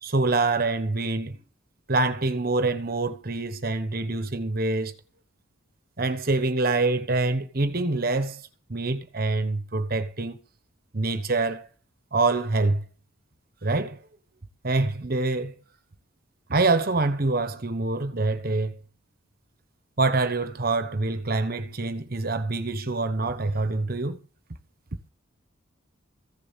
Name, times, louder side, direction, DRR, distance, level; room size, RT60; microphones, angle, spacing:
voice 1, 0.0-1.4 1.9-4.9 6.0-10.4 10.9-11.7 12.1-12.8 13.6-14.0 14.6-15.5 16.5-18.8 20.0-24.2, right 3 dB, 45° right, 1.1 m, -25 dB
15.0 x 6.9 x 7.4 m
head